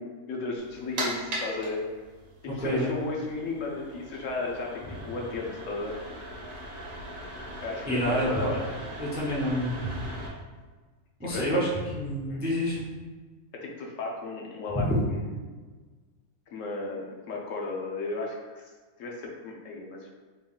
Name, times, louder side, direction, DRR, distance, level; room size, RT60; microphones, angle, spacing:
voice 1, 0.0-2.0 2.5-6.0 7.6-8.6 11.2-11.5 12.3-12.4 13.6-15.4 16.5-18.6 19.0-20.1, left 3 dB, 70° left, -1 dB, 0.9 m, -34 dB
sound 1, 0.6-10.3, right 1 dB, 65° right, 1.3 m, -39 dB
voice 2, 2.6-2.9 7.9-8.6 9.0-10.1 11.2-12.8 14.7-14.9, equal, 10° right, -6 dB, 0.4 m, -28 dB
3.9 x 3.5 x 2.4 m, 1.4 s
omnidirectional pair, 1.5 m